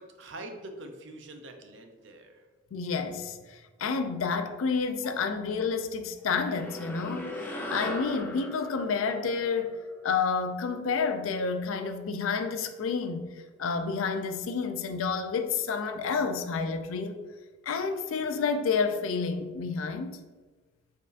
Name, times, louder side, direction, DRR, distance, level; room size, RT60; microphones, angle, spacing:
voice 1, 0.0-2.4, right 2 dB, 60° right, 0.5 m, -44 dB
voice 2, 2.7-9.7 10.0-13.3 13.6-17.2 17.6-20.2, left 5 dB, 80° left, 0.4 m, -30 dB
sound 1, 6.3-11.0, left 1 dB, 10° left, 0.4 m, -39 dB
4.5 x 3.6 x 2.4 m
head